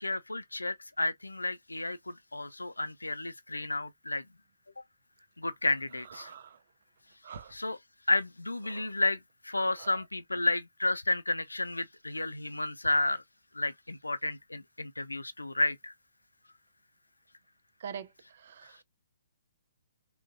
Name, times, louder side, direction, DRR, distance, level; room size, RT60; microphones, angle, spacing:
voice 1, 0.0-4.2 5.4-6.3 7.5-7.8 8.1-9.2 9.4-13.2 13.6-15.9, left 2 dB, 85° left, 0.3 m, -31 dB
voice 2, 6.2-6.6 7.2-7.5 8.7-8.9 9.8-9.9 17.8-18.1 18.4-18.8, right 7 dB, 55° right, 0.5 m, -43 dB
3.7 x 2.1 x 2.6 m
figure-of-eight pair, 130°, 0 cm